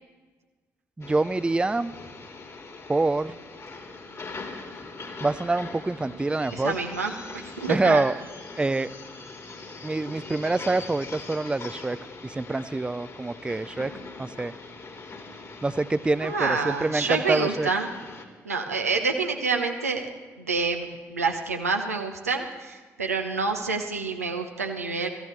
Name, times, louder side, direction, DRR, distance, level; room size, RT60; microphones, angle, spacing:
sound 1, 1.0-18.3, left 3 dB, 40° left, 2.2 m, -42 dB
voice 1, 1.0-1.9 2.9-3.4 5.2-6.7 7.7-8.1 8.6-8.9 9.8-12.0 12.2-13.9 14.2-14.5 15.6-17.7, right 2 dB, 10° right, 16 dB, 0.4 m, -26 dB
voice 2, 6.6-7.1 7.6-8.0 16.2-17.9 18.4-20.1 20.4-25.1, right 4 dB, 90° right, 3 dB, 0.8 m, -27 dB
24.0 x 14.5 x 3.2 m, 1.3 s
figure-of-eight pair, 40°, 8 cm